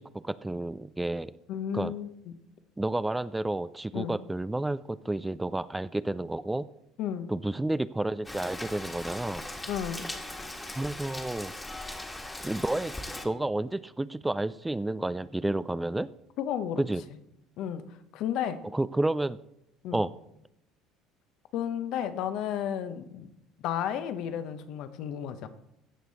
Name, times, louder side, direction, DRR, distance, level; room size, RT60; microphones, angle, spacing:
voice 1, 0.0-1.3 1.7-1.9 2.8-6.7 7.3-9.4 10.8-11.5 12.4-12.9 13.2-16.1 16.8-17.0 18.7-19.4 19.9-20.1, right 2 dB, 10° right, 15 dB, 0.4 m, -30 dB
voice 2, 1.5-2.3 3.9-4.2 7.0-7.3 9.7-10.1 16.4-16.8 17.6-18.6 19.8-20.0 21.5-23.3 23.6-25.5, left 9 dB, 65° left, 11 dB, 1.0 m, -33 dB
Rain, 8.2-13.2, left 1 dB, 15° left, 1.6 m, -39 dB
16.0 x 6.2 x 4.2 m, 0.81 s
hypercardioid pair, 75°, 0 cm